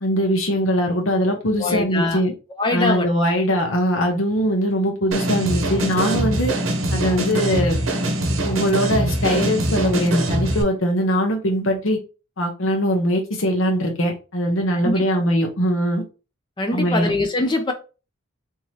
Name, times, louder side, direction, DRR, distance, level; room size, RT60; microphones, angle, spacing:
voice 1, 0.0-2.3 2.7-6.5 6.9-7.8 8.4-12.0 12.4-16.0 16.7-17.1, equal, 70° left, 0.8 m, -21 dB
voice 2, 1.6-2.2 2.6-3.1 14.8-14.9 16.6-17.7, left 2 dB, 20° left, 0.5 m, -22 dB
sound 1, 5.1-10.6, right 1 dB, 75° right, 0.8 m, -23 dB
3.6 x 2.8 x 3.1 m
head